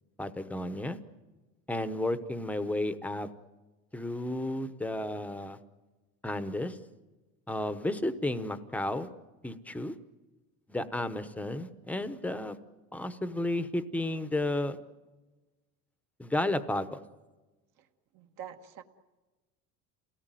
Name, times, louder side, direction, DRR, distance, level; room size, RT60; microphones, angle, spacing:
voice 1, 0.2-1.0 1.7-3.3 3.9-5.6 6.2-6.8 7.5-9.1 9.4-10.0 10.7-12.6 12.9-14.8 16.2-17.0, left 1 dB, 5° left, 11 dB, 0.9 m, -32 dB
voice 2, 18.1-18.8, right 9 dB, 55° right, 5 dB, 1.7 m, -45 dB
29.0 x 18.5 x 9.1 m, 1.2 s
cardioid pair, 165°, 38 cm